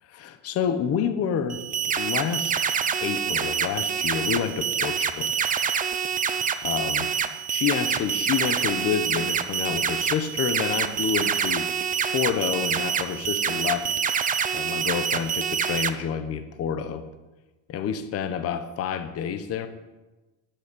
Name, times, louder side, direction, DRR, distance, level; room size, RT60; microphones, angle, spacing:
voice 1, 0.1-1.6 2.0-2.6 3.0-5.3 6.6-7.1 7.5-11.7 12.0-13.9 14.5-17.0 17.7-19.7, left 7 dB, 35° left, 8 dB, 1.2 m, -28 dB
sound 1, 1.5-15.9, right 7 dB, 20° right, 0.7 m, -26 dB
10.5 x 8.7 x 9.9 m, 1.1 s
cardioid pair, 145°, 42 cm